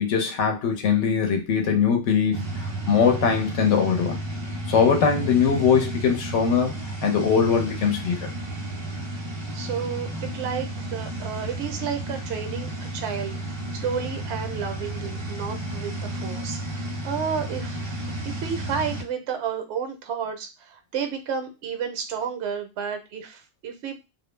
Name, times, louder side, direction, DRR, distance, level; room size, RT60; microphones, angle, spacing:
voice 1, 0.0-4.2 4.7-6.7 7.0-8.3, left 6 dB, 70° left, 3 dB, 1.0 m, -21 dB
sound 1, 2.3-19.0, right 1 dB, 30° right, 0.5 m, -32 dB
voice 2, 9.5-24.0, right 7 dB, 70° right, 6 dB, 0.8 m, -32 dB
2.4 x 2.0 x 3.1 m, 0.25 s
omnidirectional pair, 1.3 m